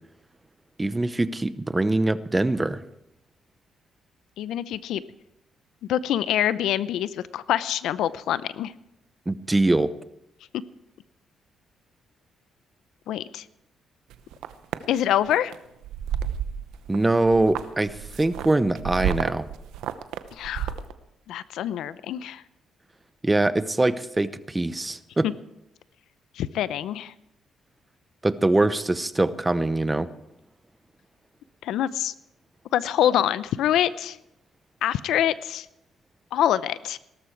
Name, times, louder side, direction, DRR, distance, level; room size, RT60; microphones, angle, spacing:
voice 1, 0.8-2.8 9.3-9.9 16.9-19.4 23.2-25.3 28.2-30.1, right 2 dB, 15° right, 14 dB, 0.8 m, -23 dB
voice 2, 4.4-5.0 5.9-8.7 13.1-13.4 14.9-15.5 20.4-20.7 21.3-22.4 26.4-27.1 31.6-32.1 32.7-34.2 34.8-35.7 36.3-37.0, left 11 dB, 80° left, 16 dB, 0.6 m, -25 dB
sound 1, 14.1-14.8 15.3-15.5 15.8-17.0 17.2-20.9, right 10 dB, 90° right, 0.8 m, -31 dB
17.5 x 13.0 x 4.6 m, 0.85 s
cardioid pair, 90°, 0 cm